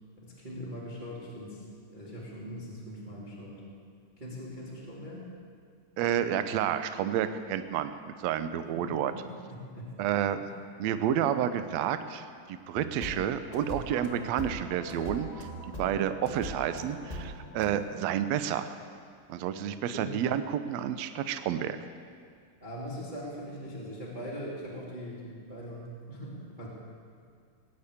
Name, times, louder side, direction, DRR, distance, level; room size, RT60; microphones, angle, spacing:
voice 1, 0.2-1.7 1.9-3.6 4.2-5.3 8.7-9.9 10.4-10.5 19.9-20.2 22.6-26.7, equal, 15° right, -6 dB, 2.3 m, -41 dB
voice 2, 6.0-9.1 10.0-10.4 10.8-18.7 19.3-21.8, right 10 dB, 75° right, 10 dB, 1.6 m, -30 dB
sound 1, 12.7-17.8, equal, 25° left, 0.9 m, -41 dB
19.5 x 8.7 x 8.5 m, 2.1 s
omnidirectional pair, 3.8 m